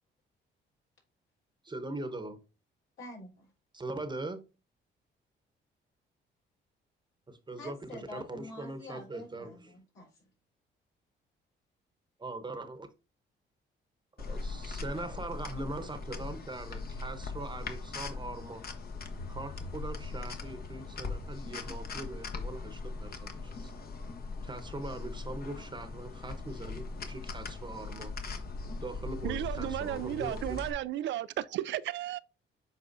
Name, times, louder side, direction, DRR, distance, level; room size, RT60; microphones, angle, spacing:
voice 1, 1.6-2.4 3.7-4.4 7.3-9.7 12.2-12.9 14.2-18.6 19.3-23.7 24.4-28.1 28.8-30.6, right 2 dB, 20° right, 1.0 m, -41 dB
voice 2, 3.0-3.5 7.6-10.2, left 2 dB, 75° left, 4.0 m, -47 dB
sound 1, 14.2-30.7, left 3 dB, 50° left, 1.2 m, -40 dB
voice 3, 29.2-32.2, right 13 dB, 70° right, 0.4 m, -34 dB
8.0 x 4.7 x 2.7 m
cardioid pair, 90°, 20 cm